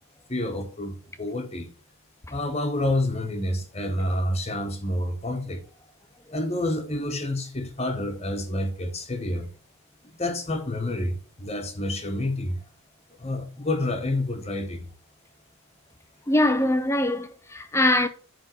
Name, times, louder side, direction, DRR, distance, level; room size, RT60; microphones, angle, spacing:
voice 1, 0.3-1.7 2.3-5.6 6.3-9.5 10.1-12.6 13.2-14.9, left 1 dB, 30° left, 1.2 m, -28 dB
voice 2, 16.3-18.1, left 1 dB, 10° left, 0.5 m, -22 dB
9.6 x 3.6 x 6.6 m
head